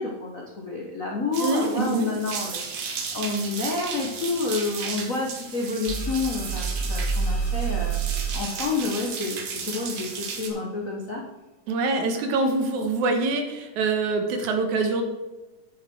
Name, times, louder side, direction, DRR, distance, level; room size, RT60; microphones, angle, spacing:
voice 1, 0.0-11.2, left 3 dB, 80° left, -1 dB, 0.7 m, -29 dB
sound 1, 1.3-10.5, right 5 dB, 55° right, 1.9 m, -35 dB
voice 2, 1.4-2.1 11.7-15.0, right 3 dB, 75° right, 5 dB, 2.6 m, -24 dB
sound 2, 5.9-9.4, right 5 dB, 15° left, 2.7 m, -28 dB
9.9 x 7.1 x 4.5 m, 1.1 s
omnidirectional pair, 3.6 m